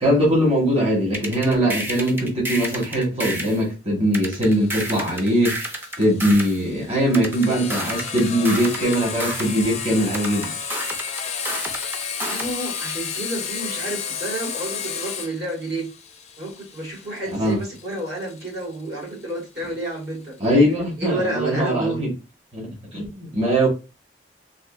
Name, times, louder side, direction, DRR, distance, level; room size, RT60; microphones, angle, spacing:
voice 1, 0.0-5.7 6.0-10.5 17.3-17.6 20.4-22.1 22.5-23.7, equal, 35° right, 1.2 m, -21 dB
sound 1, 1.1-3.6 4.1-6.6 7.1-9.6 10.1-12.6, right 1 dB, 10° right, 0.5 m, -30 dB
Sawing, 4.2-19.7, left 6 dB, 40° left, 0.5 m, -33 dB
voice 2, 12.3-15.9 16.4-20.4 21.0-22.1, right 2 dB, 65° right, 1.5 m, -30 dB
3.6 x 2.3 x 2.4 m
head